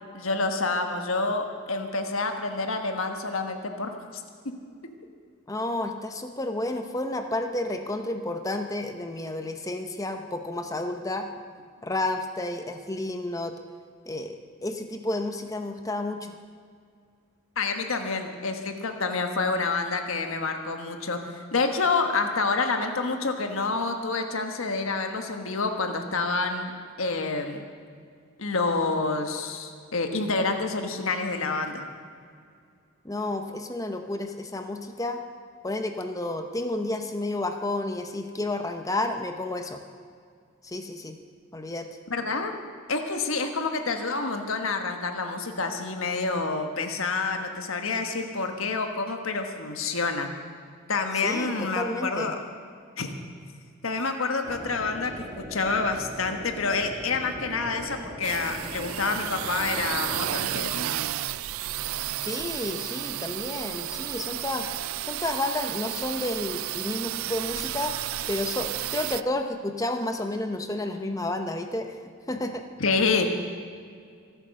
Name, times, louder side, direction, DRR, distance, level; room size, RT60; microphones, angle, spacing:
voice 1, 0.1-4.2 17.6-21.2 21.5-26.7 27.0-27.6 28.4-31.9 42.1-42.5 42.9-50.3 50.9-52.3 53.0-53.1 53.8-60.9 72.8-73.3, left 3 dB, 80° left, 5 dB, 1.4 m, -28 dB
voice 2, 5.5-11.3 11.8-13.6 14.1-16.4 33.0-35.2 35.6-39.8 40.6-41.2 41.5-41.9 51.1-52.3 62.2-64.7 65.0-68.0 68.3-72.0 72.3-72.6, left 2 dB, 15° left, 5 dB, 0.8 m, -31 dB
sound 1, 54.4-60.6, equal, 25° right, 1.9 m, -40 dB
sound 2, 58.2-69.2, right 13 dB, 90° right, 0.4 m, -32 dB
24.5 x 9.0 x 6.5 m, 2.2 s
head